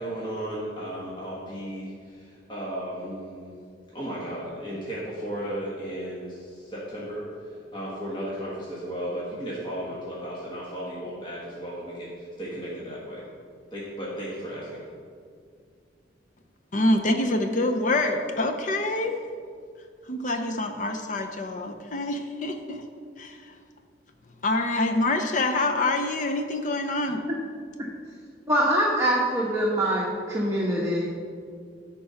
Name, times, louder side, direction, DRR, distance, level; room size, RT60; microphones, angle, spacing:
voice 1, 0.0-3.5 3.9-13.2 13.7-14.8, equal, 25° left, -7 dB, 1.7 m, -35 dB
voice 2, 16.7-19.1 20.1-22.8 23.2-23.4 24.4-27.2, left 2 dB, 45° left, 5 dB, 0.6 m, -26 dB
voice 3, 28.5-31.1, right 1 dB, 20° right, -4 dB, 1.0 m, -24 dB
13.0 x 4.5 x 5.7 m, 2.1 s
head